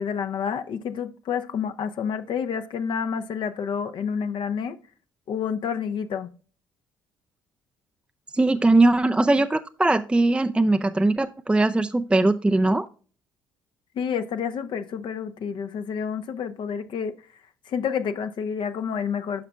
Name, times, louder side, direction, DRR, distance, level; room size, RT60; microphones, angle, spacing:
voice 1, 0.0-4.8 5.3-6.3 14.0-17.1 17.7-19.4, left 7 dB, 50° left, 0.6 m, -29 dB
voice 2, 8.3-12.9, right 2 dB, 10° right, 0.4 m, -20 dB
10.5 x 5.7 x 2.3 m
hypercardioid pair, 50°, 10 cm